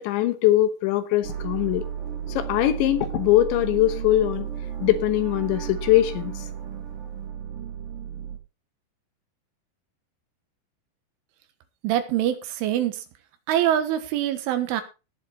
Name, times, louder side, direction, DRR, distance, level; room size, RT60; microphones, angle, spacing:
voice 1, 0.0-1.9 2.3-4.5 4.8-6.3, left 14 dB, 75° left, 11 dB, 3.2 m, -21 dB
sound 1, 1.2-8.4, right 8 dB, 50° right, 3.9 m, -33 dB
voice 2, 11.8-13.0 13.5-14.8, right 11 dB, 80° right, 9 dB, 3.9 m, -24 dB
18.0 x 7.4 x 4.0 m, 0.30 s
omnidirectional pair, 5.6 m